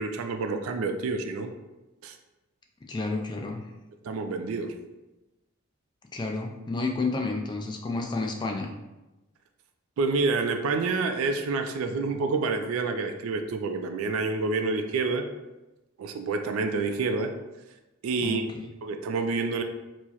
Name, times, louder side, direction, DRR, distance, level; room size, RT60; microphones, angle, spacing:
voice 1, 0.0-1.5 2.0-2.2 4.0-4.8 10.0-15.3 16.0-17.3 18.0-18.4 18.8-19.6, right 4 dB, 80° right, 6 dB, 0.3 m, -28 dB
voice 2, 2.9-3.6 6.1-8.7 18.2-18.7, left 3 dB, 20° left, 2 dB, 0.3 m, -30 dB
4.5 x 2.0 x 2.8 m, 1.1 s
head